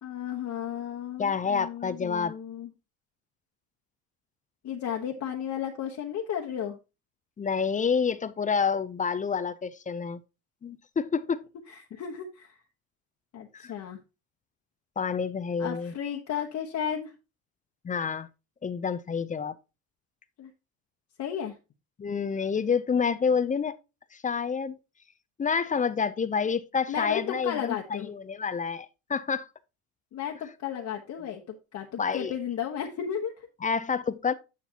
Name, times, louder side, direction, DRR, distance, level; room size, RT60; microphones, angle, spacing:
voice 1, 0.0-2.7 4.6-6.8 11.7-12.6 13.3-14.0 15.6-17.1 20.4-20.5 21.2-21.6 26.9-28.1 30.1-33.5, left 9 dB, 45° left, 1.2 m, -34 dB
voice 2, 1.2-2.4 7.4-10.2 10.6-11.4 13.5-13.7 15.0-15.9 17.8-18.3 18.6-19.5 22.0-23.8 24.1-24.7 25.4-29.5 32.0-32.3 33.6-34.3, left 6 dB, 20° left, 0.5 m, -28 dB
9.9 x 5.8 x 2.8 m
supercardioid pair, 95°, 41 cm